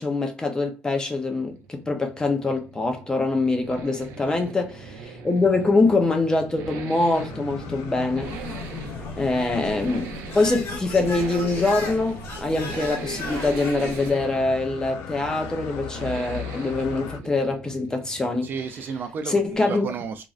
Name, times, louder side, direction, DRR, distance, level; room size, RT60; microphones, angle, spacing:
voice 1, 0.0-8.3 9.2-10.1 10.3-18.5 19.3-19.9, left 3 dB, 15° left, 0.6 m, -24 dB
sound 1, 1.2-19.1, right 5 dB, 75° right, 0.7 m, -40 dB
sound 2, 7.1-17.2, left 8 dB, 85° left, 0.5 m, -39 dB
sound 3, 8.2-14.1, left 3 dB, 60° left, 0.9 m, -36 dB
voice 2, 18.4-20.3, right 6 dB, 40° right, 0.4 m, -33 dB
3.0 x 2.5 x 2.4 m
cardioid pair, 140°, 5 cm